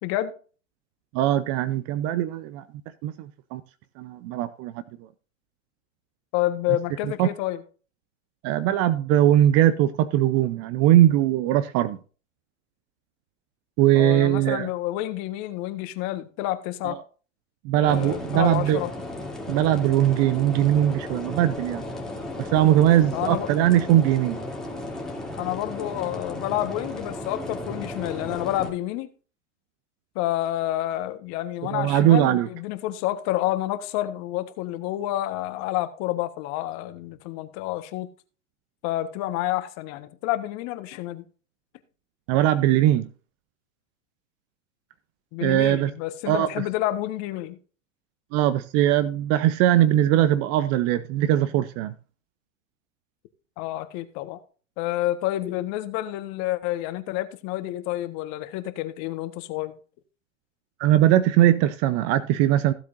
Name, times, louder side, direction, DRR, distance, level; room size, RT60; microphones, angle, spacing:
voice 1, 0.0-0.3 6.3-7.6 13.9-17.0 17.7-18.9 23.1-23.5 25.3-29.1 30.1-38.1 38.8-41.2 45.3-47.6 53.6-54.4 54.8-59.7, left 15 dB, 45° left, 1.5 m, -29 dB
voice 2, 1.1-2.6 3.0-3.6 4.0-4.7 7.2-7.3 8.4-12.0 13.8-14.7 16.8-17.0 17.6-18.8 19.5-21.8 22.4-24.4 31.7-32.5 42.3-43.1 45.4-45.9 46.3-46.6 48.3-51.9 60.8-62.7, right 12 dB, 40° right, 0.8 m, -20 dB
sound 1, 17.9-28.7, left 1 dB, ahead, 3.0 m, -35 dB
15.5 x 8.1 x 2.7 m
hypercardioid pair, 105°, 39 cm